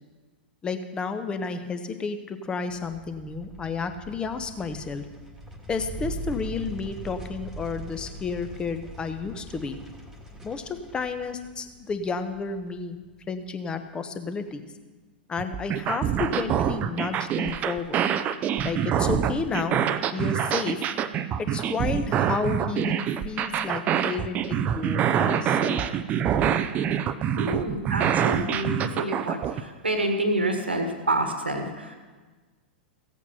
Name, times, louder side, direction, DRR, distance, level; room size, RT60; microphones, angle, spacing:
voice 1, 0.6-5.0 5.7-9.8 10.4-13.0 13.3-14.7 15.3-18.0 18.6-19.8 20.1-20.8 21.4-25.8 27.5-27.6, left 4 dB, 15° left, 9 dB, 0.9 m, -31 dB
sound 1, 2.7-13.3, right 1 dB, 5° right, 1.8 m, -41 dB
sound 2, 15.4-29.6, right 9 dB, 25° right, 0.5 m, -25 dB
voice 2, 27.4-32.0, right 1 dB, 80° right, 6 dB, 1.5 m, -28 dB
15.5 x 8.5 x 5.7 m, 1.3 s
figure-of-eight pair, 100°, 6 cm